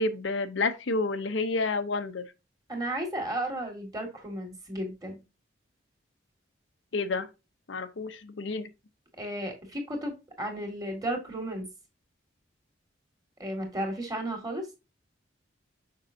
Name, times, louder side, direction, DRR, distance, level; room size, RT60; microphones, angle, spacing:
voice 1, 0.0-2.2 6.9-7.3 7.7-8.7, left 3 dB, 80° left, 0.8 m, -29 dB
voice 2, 2.7-5.2 9.2-11.7 13.4-14.7, right 1 dB, 20° right, 2.0 m, -34 dB
6.7 x 5.4 x 2.7 m
head